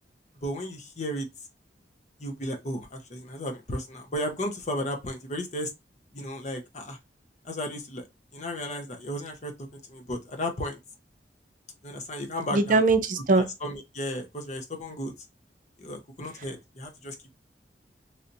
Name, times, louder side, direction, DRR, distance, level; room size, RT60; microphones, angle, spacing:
voice 1, 0.4-1.3 2.2-5.7 6.1-7.0 7.4-8.0 8.3-10.8 11.8-12.8 13.3-15.1 15.8-17.1, equal, 40° left, 0.8 m, -34 dB
voice 2, 12.5-13.5, right 3 dB, 50° right, 0.5 m, -21 dB
3.2 x 2.8 x 2.6 m
head